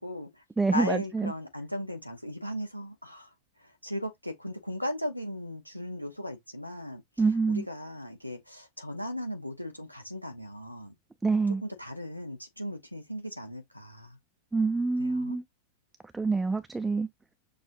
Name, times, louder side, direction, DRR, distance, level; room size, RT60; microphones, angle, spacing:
voice 1, 0.0-3.3 3.6-7.0 7.5-10.9 11.6-14.2 15.0-15.4, left 1 dB, 90° left, 0.9 m, -37 dB
voice 2, 0.6-1.3 7.2-7.6 11.2-11.6 14.5-15.4 16.1-17.1, right 4 dB, 10° right, 0.4 m, -26 dB
6.4 x 2.6 x 2.7 m
figure-of-eight pair, 90°, 0 cm